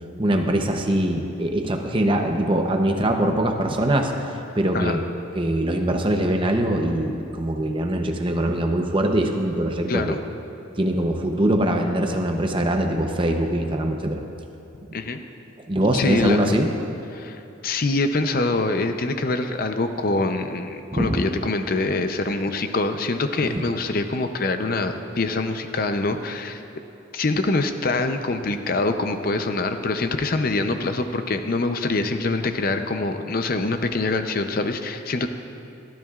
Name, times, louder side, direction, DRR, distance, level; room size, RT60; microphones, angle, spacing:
voice 1, 0.2-4.1 4.5-5.0 5.3-10.2 10.8-14.2 15.7-16.7 20.9-21.2 23.4-23.5, right 1 dB, 25° right, 4 dB, 0.7 m, -22 dB
voice 2, 9.9-10.2 14.9-15.2 15.9-16.6 17.1-26.6 27.1-35.3, left 3 dB, 50° left, 7 dB, 0.6 m, -24 dB
21.0 x 12.5 x 2.4 m, 2.8 s
head